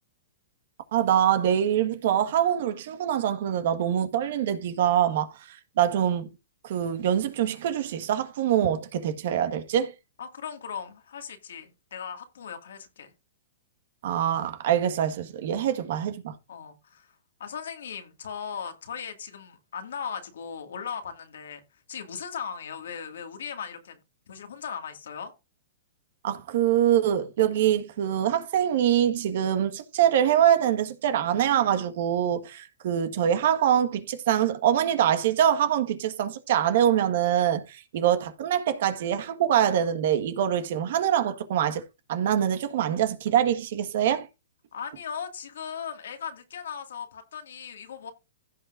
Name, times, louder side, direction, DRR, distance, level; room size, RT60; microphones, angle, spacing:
voice 1, 0.9-6.3 6.6-9.9 14.0-16.3 26.2-41.8 42.1-44.3, right 10 dB, 60° right, 1.5 m, -24 dB
voice 2, 10.2-13.1 16.5-17.1 17.4-21.6 21.9-24.0 24.3-25.3 44.7-48.1, left 7 dB, 80° left, 2.1 m, -38 dB
15.5 x 5.8 x 2.6 m
hypercardioid pair, 135°, 0 cm